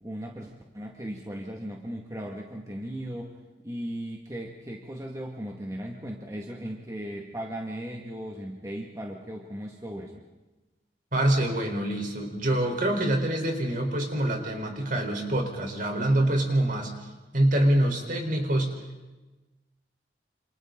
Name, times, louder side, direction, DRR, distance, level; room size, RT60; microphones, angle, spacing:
voice 1, 0.0-3.4 3.6-10.2, equal, 20° right, 0 dB, 2.0 m, -37 dB
voice 2, 11.1-16.9 17.3-18.7, right 1 dB, 50° right, 2 dB, 4.3 m, -25 dB
28.0 x 28.0 x 3.9 m, 1.1 s
head